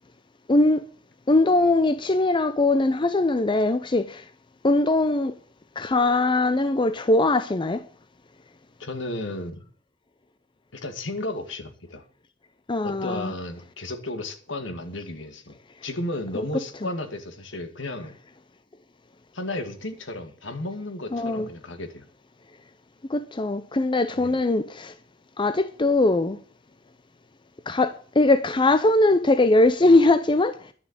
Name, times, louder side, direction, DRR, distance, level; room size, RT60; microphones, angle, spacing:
voice 1, 0.5-0.9 1.3-4.2 4.6-5.3 5.8-7.9 12.7-13.3 16.3-16.4 21.1-21.5 23.1-24.9 25.4-26.4 27.7-30.7, left 2 dB, 25° left, 0.6 m, -21 dB
voice 2, 8.8-9.6 10.7-12.0 12.8-18.1 19.3-22.1 24.1-24.4, left 2 dB, 70° left, 2.3 m, -34 dB
11.5 x 6.9 x 9.0 m
head